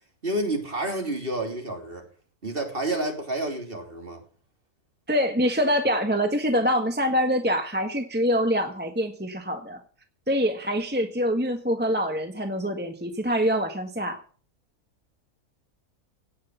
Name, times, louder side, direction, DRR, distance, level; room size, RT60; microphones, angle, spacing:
voice 1, 0.2-2.1 2.4-4.2, right 1 dB, 35° right, 3.4 m, -29 dB
voice 2, 5.1-9.8 10.3-14.2, equal, 5° right, 1.3 m, -25 dB
17.0 x 6.5 x 9.2 m
omnidirectional pair, 1.6 m